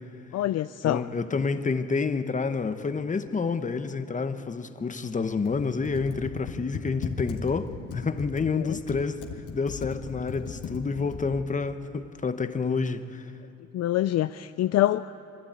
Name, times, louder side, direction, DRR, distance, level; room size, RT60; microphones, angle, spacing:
voice 1, 0.3-1.0 8.6-8.8 13.7-15.2, left 13 dB, 60° left, 13 dB, 0.4 m, -25 dB
voice 2, 0.8-9.2 9.5-13.3, left 4 dB, 25° left, 10 dB, 1.0 m, -29 dB
Computer keyboard, 5.3-11.5, left 6 dB, 80° left, 1.8 m, -38 dB
24.0 x 12.5 x 8.8 m, 2.8 s
cardioid pair, 90°, 30 cm